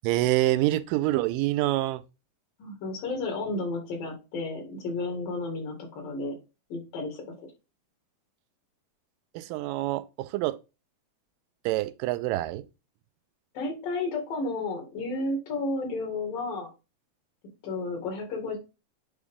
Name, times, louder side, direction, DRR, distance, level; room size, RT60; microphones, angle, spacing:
voice 1, 0.0-2.0 9.3-10.5 11.7-12.6, right 16 dB, 90° right, 2.3 m, -26 dB
voice 2, 2.6-6.4 6.7-7.3 13.6-16.7 17.6-18.6, left 2 dB, 85° left, 3.8 m, -32 dB
9.1 x 3.6 x 3.6 m
omnidirectional pair, 3.8 m